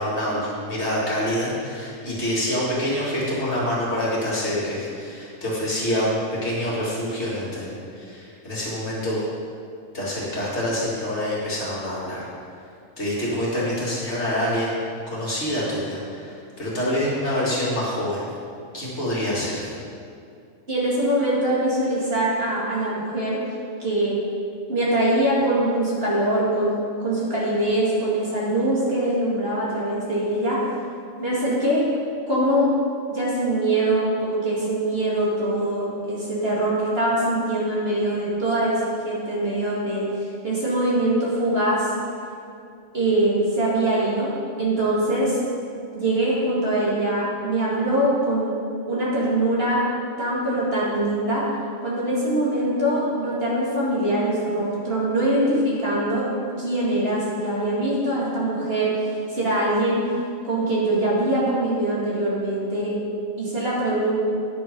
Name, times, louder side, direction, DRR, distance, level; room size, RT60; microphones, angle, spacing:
voice 1, 0.0-9.2 9.9-12.2 13.0-14.8 15.1-18.2 18.7-19.7, equal, 50° left, -7 dB, 2.6 m, -26 dB
voice 2, 20.7-23.4 23.8-24.2 24.7-30.6 31.2-31.9 32.3-32.7 33.1-41.9 42.9-44.3 44.6-45.4 45.9-48.6 48.9-49.8 50.2-51.5 51.8-56.3 56.6-60.0 60.4-63.0 63.4-64.2, right 1 dB, 45° right, -7 dB, 2.4 m, -23 dB
10.0 x 7.7 x 5.2 m, 2.5 s
omnidirectional pair, 1.5 m